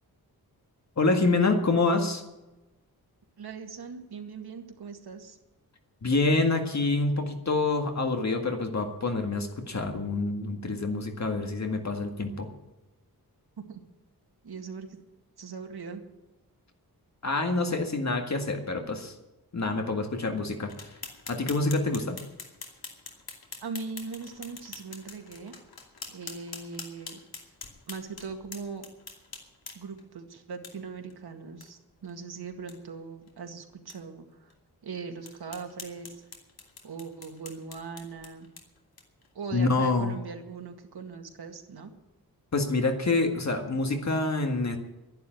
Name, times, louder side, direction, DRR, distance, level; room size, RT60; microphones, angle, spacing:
voice 1, 1.0-2.2 6.0-12.5 17.2-19.1 19.5-20.7 21.3-22.2 39.5-40.1 42.5-44.8, left 3 dB, 45° left, 5 dB, 1.8 m, -26 dB
voice 2, 3.4-5.4 13.6-13.8 14.4-15.0 15.4-16.0 23.6-25.5 26.1-27.2 27.9-28.9 29.7-34.5 34.8-36.2 36.8-38.5 39.3-41.9, right 5 dB, 80° right, 4 dB, 2.0 m, -40 dB
sound 1, 20.7-30.0 30.6-30.7 31.1-31.2 31.6-31.7 32.0-32.1 32.5-32.8 33.3-33.4 33.9-34.0 34.5-34.6 35.2-39.3, left 4 dB, 70° left, 2.7 m, -45 dB
11.5 x 11.0 x 9.2 m, 1.0 s
wide cardioid pair, 145°, 38 cm